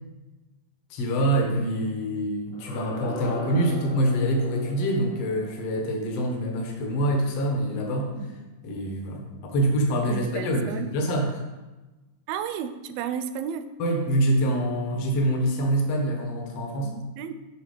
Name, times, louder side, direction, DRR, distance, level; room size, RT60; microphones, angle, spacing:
voice 1, 0.9-8.1 8.6-11.3 13.8-16.9, right 1 dB, 70° left, 1 dB, 1.5 m, -25 dB
sound 1, 2.5-7.4, equal, 90° left, 3.2 m, -39 dB
voice 2, 10.1-10.9 12.3-13.6 16.8-17.3, right 8 dB, 85° right, 11 dB, 2.3 m, -33 dB
9.4 x 3.5 x 5.1 m, 1.1 s
omnidirectional pair, 4.2 m